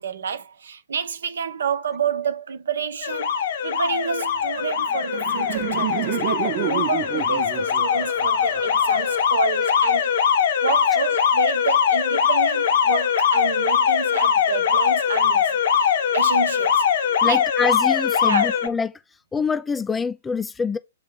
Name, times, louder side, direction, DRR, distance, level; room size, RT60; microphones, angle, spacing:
voice 1, 0.0-3.3 3.6-10.1 10.6-16.8 17.2-17.4 18.2-18.5, right 6 dB, 65° right, 0.8 m, -29 dB
Alarm, 3.0-18.7, left 7 dB, 55° left, 1.1 m, -21 dB
Laughter, 4.6-9.6, right 12 dB, 30° right, 1.0 m, -30 dB
voice 2, 17.2-19.0 19.3-20.8, left 5 dB, 10° left, 0.6 m, -25 dB
8.4 x 2.9 x 4.1 m
figure-of-eight pair, 115°, 0 cm